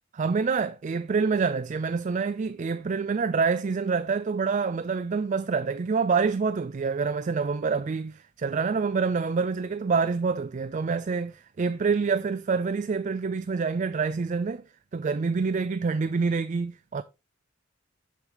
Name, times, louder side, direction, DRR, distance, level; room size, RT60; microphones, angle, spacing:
voice 1, 0.1-14.7 14.9-17.0, right 5 dB, 35° right, 0.4 m, -27 dB
6.6 x 6.5 x 3.0 m
head